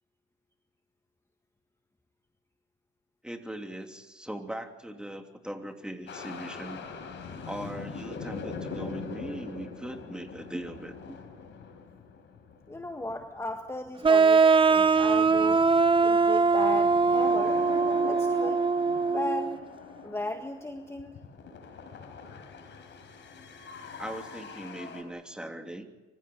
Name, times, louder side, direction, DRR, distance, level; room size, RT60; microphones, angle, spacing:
voice 1, 3.2-6.8 7.4-11.2 24.0-25.9, right 1 dB, 5° right, 4 dB, 3.0 m, -40 dB
sound 1, 6.1-13.9 14.2-25.0, left 4 dB, 65° left, 4.5 m, -42 dB
voice 2, 12.7-15.6 16.0-17.6 18.0-18.7 19.1-19.6 20.0-21.1, left 2 dB, 15° left, 5 dB, 1.6 m, -35 dB
sound 2, 14.0-19.6, right 4 dB, 25° right, 0.8 m, -22 dB
25.0 x 16.0 x 8.9 m, 1.1 s
cardioid pair, 90°, 20 cm